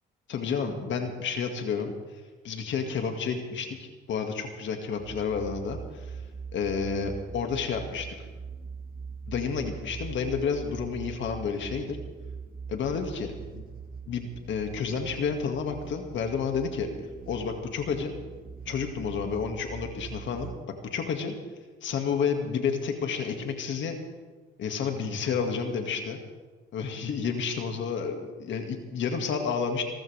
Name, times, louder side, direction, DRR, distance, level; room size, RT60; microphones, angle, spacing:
voice 1, 0.3-1.9 2.4-6.2 6.5-8.1 9.3-12.0 12.7-13.6 14.1-16.9 17.3-18.1 18.7-20.5 20.9-21.3 21.8-24.0 24.6-26.2 26.7-29.8, left 6 dB, 70° left, 4 dB, 2.1 m, -30 dB
sound 1, 5.0-20.6, right 6 dB, 45° right, 1.6 m, -42 dB
25.0 x 14.0 x 3.5 m, 1.3 s
cardioid pair, 90°, 20 cm